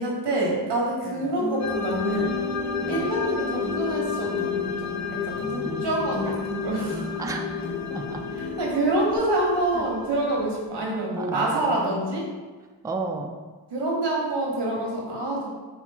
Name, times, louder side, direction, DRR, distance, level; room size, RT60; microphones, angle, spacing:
voice 1, 0.0-2.3 2.9-7.1 8.4-12.3 13.7-15.5, right 1 dB, 75° right, -2 dB, 1.3 m, -27 dB
sound 1, 1.4-9.2, left 2 dB, 75° left, 1.3 m, -33 dB
sound 2, 1.6-10.6, left 8 dB, 45° left, 0.5 m, -33 dB
voice 2, 7.2-7.6 7.9-8.2 9.7-9.9 10.8-12.1 12.8-13.3, right 3 dB, 10° right, 2 dB, 0.4 m, -33 dB
4.8 x 2.6 x 3.5 m, 1.4 s
cardioid pair, 45°, 42 cm